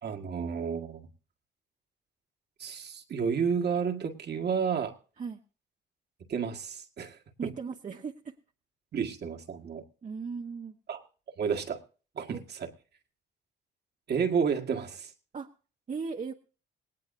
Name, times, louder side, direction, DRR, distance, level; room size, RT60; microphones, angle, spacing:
voice 1, 0.0-1.1 2.6-5.0 6.3-7.5 8.9-9.8 10.9-11.0 11.4-11.8 12.1-12.7 14.1-15.1, right 6 dB, 55° right, 3 dB, 1.8 m, -31 dB
voice 2, 7.4-8.3 10.0-10.8 12.3-12.4 15.3-15.5 15.9-16.3, right 5 dB, 40° right, 3 dB, 1.2 m, -37 dB
18.5 x 18.0 x 2.7 m, 0.38 s
cardioid pair, 90°, 20 cm